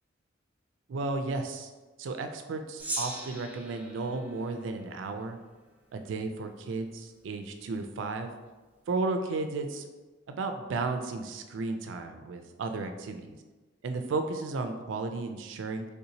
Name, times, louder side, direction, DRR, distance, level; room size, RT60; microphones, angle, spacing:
voice 1, 0.9-1.7 2.0-5.4 5.9-8.3 8.9-9.9 10.3-13.4 13.8-15.9, right 3 dB, 75° right, 7 dB, 0.3 m, -34 dB
Gong, 2.8-5.4, right 2 dB, 10° right, 0.5 m, -40 dB
3.5 x 2.7 x 2.8 m, 1.2 s
head